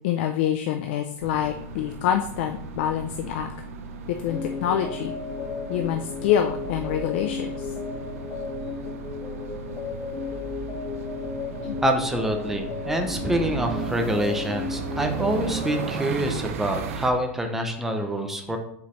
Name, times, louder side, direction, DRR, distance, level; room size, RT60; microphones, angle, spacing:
voice 1, 0.0-3.5 4.2-5.1 5.7-7.5 11.6-11.8, left 10 dB, 50° left, 6 dB, 0.4 m, -26 dB
sound 1, 1.2-17.1, right 5 dB, 75° right, 0.7 m, -36 dB
sound 2, 4.3-16.0, left 5 dB, 25° left, 1.0 m, -34 dB
voice 2, 11.8-18.6, right 1 dB, 5° right, 4 dB, 0.5 m, -26 dB
6.9 x 4.8 x 3.1 m, 0.71 s
supercardioid pair, 180°, 8 cm